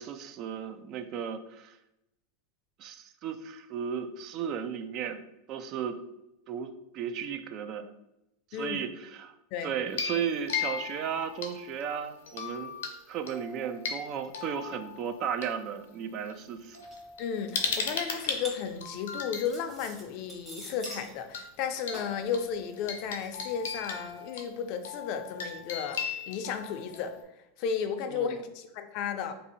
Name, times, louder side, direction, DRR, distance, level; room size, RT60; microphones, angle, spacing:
voice 1, 0.0-1.8 2.8-5.2 5.5-6.0 6.5-7.9 8.5-9.3 9.6-12.7 13.1-16.8 28.1-28.4, right 8 dB, 45° right, 9 dB, 0.3 m, -35 dB
sound 1, 9.9-11.8 12.3-12.9 13.3-15.5 16.3-16.4 16.7-19.5 20.9-21.0 21.3-21.4 21.8-27.2, left 6 dB, 85° left, 0.7 m, -37 dB
sound 2, 16.4-16.5 16.7-17.1 17.5-21.1 21.5-24.2, right 1 dB, 15° right, 0.9 m, -46 dB
voice 2, 17.2-27.2 27.6-29.3, left 7 dB, 55° left, 8 dB, 0.4 m, -34 dB
2.8 x 2.6 x 4.0 m, 0.87 s
supercardioid pair, 130°, 0 cm